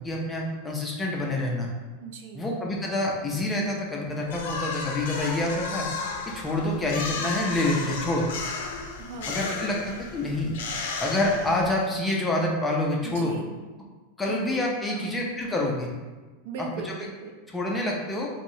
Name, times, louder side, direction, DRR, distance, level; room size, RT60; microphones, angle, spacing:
voice 1, 0.0-1.7 2.3-5.9 6.3-8.3 9.3-9.8 10.1-10.5 11.0-13.3 14.2-15.9 17.5-18.3, left 1 dB, 10° left, -2 dB, 0.4 m, -27 dB
voice 2, 2.0-2.5 9.0-9.5 13.0-13.5 14.3-15.2 16.4-17.4, right 4 dB, 60° right, 3 dB, 0.4 m, -39 dB
sound 1, 4.3-11.9, left 4 dB, 75° left, 0.4 m, -34 dB
3.0 x 2.7 x 2.7 m, 1.3 s
supercardioid pair, 165°, 0 cm